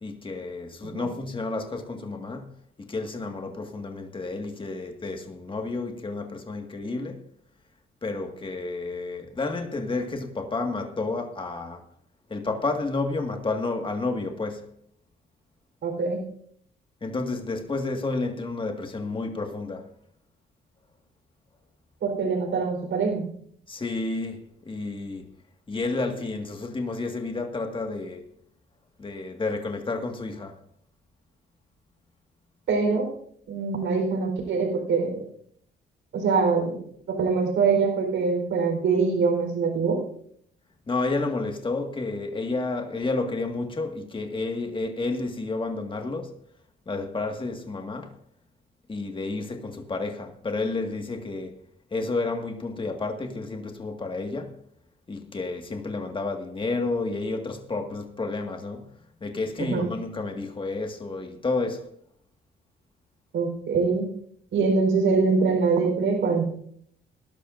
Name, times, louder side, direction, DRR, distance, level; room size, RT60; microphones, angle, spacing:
voice 1, 0.0-2.5 2.8-7.2 8.0-11.9 12.3-14.7 17.0-19.9 23.7-25.3 25.7-28.3 29.0-30.6 40.9-46.4 46.9-48.1 48.9-51.6 51.9-54.6 55.1-58.9 59.2-61.9, left 3 dB, 25° left, 1.9 m, -31 dB
voice 2, 15.8-16.2 22.0-23.2 32.7-33.1 33.5-35.2 36.1-36.8 37.1-40.0 59.7-59.9 63.3-64.1 64.5-66.4, right 4 dB, 70° right, 4.3 m, -24 dB
19.5 x 12.0 x 2.6 m
cardioid pair, 90°, 20 cm